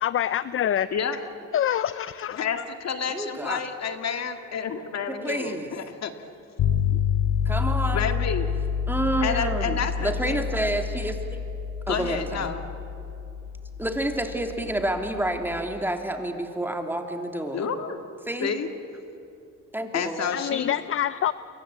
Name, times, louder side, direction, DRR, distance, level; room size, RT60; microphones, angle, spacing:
voice 1, 0.0-0.9 1.5-2.5 20.3-21.3, left 10 dB, 45° left, 16 dB, 0.6 m, -26 dB
voice 2, 2.4-6.1 6.9-7.0 7.8-8.5 9.2-10.5 11.9-12.6 17.5-18.0 18.4-18.7 19.9-20.8, left 6 dB, 60° left, 7 dB, 2.1 m, -29 dB
voice 3, 3.1-3.6 5.1-5.7 7.4-8.1 8.9-11.4 11.9-12.5 13.8-17.7 18.3-18.6 19.7-20.3, right 1 dB, 5° right, 4 dB, 3.0 m, -29 dB
sound 1, 6.6-15.6, left 7 dB, 85° left, 2.6 m, -28 dB
29.5 x 24.0 x 8.6 m, 2.7 s
cardioid pair, 90°, 30 cm